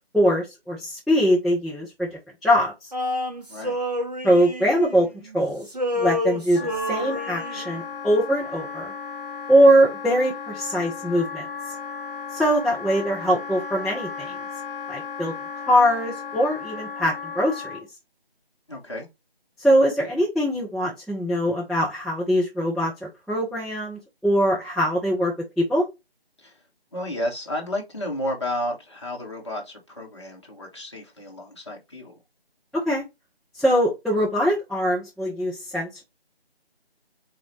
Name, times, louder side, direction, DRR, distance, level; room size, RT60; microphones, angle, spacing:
voice 1, 0.1-2.1 2.4-2.7 4.2-5.1 5.3-5.7 5.9-8.9 9.5-11.5 12.3-14.3 14.9-15.3 15.7-17.8 19.6-25.8 32.7-33.0 33.6-36.0, equal, ahead, 0.4 m, -22 dB
Male singing, 2.9-5.4 5.6-7.8, left 1 dB, 40° right, 0.9 m, -29 dB
voice 2, 3.5-3.8 18.7-19.1 26.4-26.6 26.9-32.1, left 1 dB, 25° left, 1.1 m, -32 dB
Wind instrument woodwind instrument, 6.5-17.9, left 6 dB, 60° left, 0.7 m, -35 dB
4.1 x 2.8 x 4.4 m
figure-of-eight pair, 170°, 31 cm